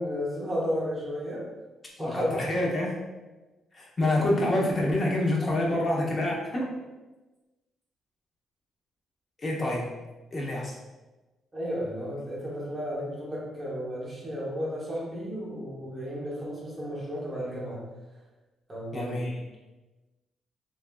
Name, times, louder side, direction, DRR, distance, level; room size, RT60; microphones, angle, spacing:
voice 1, 0.0-1.5 2.0-2.4 11.5-17.8 18.7-19.3, equal, 15° right, -6 dB, 1.0 m, -33 dB
voice 2, 2.0-3.0 3.7-6.7 9.4-9.9 10.3-10.7 18.9-19.4, left 1 dB, 35° left, -2 dB, 0.8 m, -27 dB
3.3 x 2.5 x 2.2 m, 1.1 s
cardioid pair, 90°, 0 cm